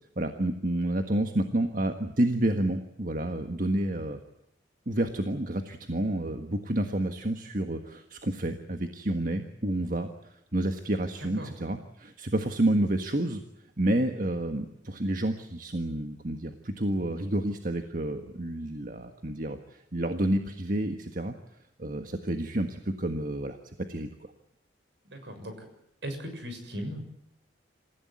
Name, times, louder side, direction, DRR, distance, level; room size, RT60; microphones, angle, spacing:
voice 1, 0.2-4.2 4.9-13.4 13.8-21.3 21.8-23.6 23.9-24.1, right 1 dB, 45° right, 6 dB, 1.6 m, -29 dB
voice 2, 11.2-11.5 25.0-25.7 26.0-27.0, equal, 65° right, 6 dB, 6.8 m, -38 dB
27.5 x 16.0 x 9.6 m, 0.79 s
head